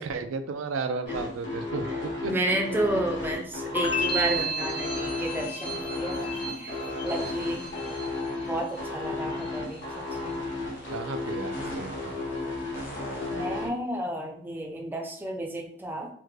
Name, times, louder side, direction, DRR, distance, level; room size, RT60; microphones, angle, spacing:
voice 1, 0.0-2.3 7.3-7.4 10.9-12.2, right 4 dB, 90° right, 8 dB, 0.4 m, -34 dB
sound 1, 1.0-13.7, left 2 dB, 65° left, 1.2 m, -33 dB
voice 2, 2.2-6.3 6.6-6.8 7.0-7.7 8.5-10.4 13.2-16.1, right 1 dB, 10° right, 1 dB, 0.4 m, -32 dB
sound 2, 3.7-8.8 9.1-9.7, right 1 dB, 25° left, 0.7 m, -34 dB
sound 3, 7.1-8.2 8.6-13.7, equal, 45° left, 1.1 m, -44 dB
3.5 x 2.1 x 3.2 m, 0.67 s
head